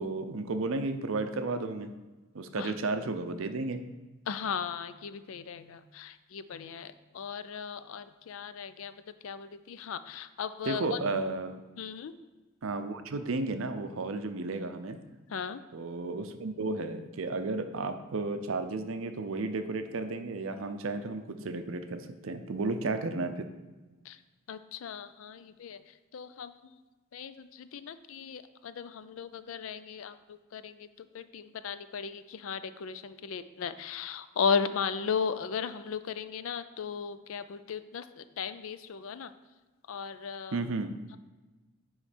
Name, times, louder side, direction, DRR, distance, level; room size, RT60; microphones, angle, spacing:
voice 1, 0.0-1.9 2.3-3.8 10.7-11.6 12.6-15.0 15.7-23.5 40.5-40.9, right 3 dB, 70° right, 9 dB, 0.6 m, -33 dB
voice 2, 4.3-11.0 11.8-12.2 15.3-15.6 24.0-24.2 24.5-26.5 27.1-39.3 39.9-40.6, left 6 dB, 70° left, 13 dB, 0.4 m, -36 dB
9.4 x 3.2 x 5.0 m, 1.2 s
head